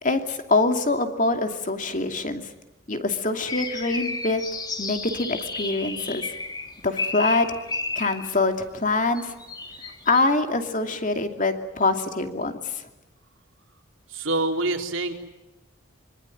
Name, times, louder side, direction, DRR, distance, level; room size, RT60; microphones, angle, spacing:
voice 1, 0.0-2.5 2.9-4.4 4.8-6.3 6.8-7.6 8.0-9.3 10.1-12.7, left 3 dB, 40° left, 6 dB, 2.6 m, -24 dB
sound 1, 3.5-8.4 9.2-10.2, left 3 dB, 20° left, 2.6 m, -32 dB
voice 2, 14.1-15.1, right 2 dB, 70° right, 4 dB, 3.6 m, -26 dB
25.5 x 25.0 x 9.2 m, 1.0 s
head